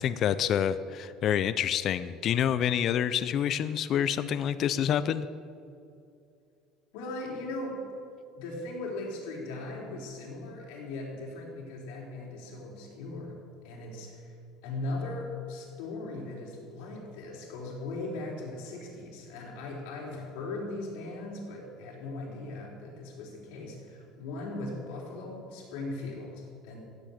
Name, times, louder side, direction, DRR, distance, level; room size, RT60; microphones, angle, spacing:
voice 1, 0.0-5.3, left 9 dB, 35° left, 13 dB, 0.4 m, -27 dB
voice 2, 6.9-7.8 8.3-13.4 13.6-14.4 14.6-26.8, left 2 dB, 70° left, -2 dB, 4.1 m, -38 dB
15.5 x 7.7 x 8.7 m, 2.4 s
cardioid pair, 175°, 0 cm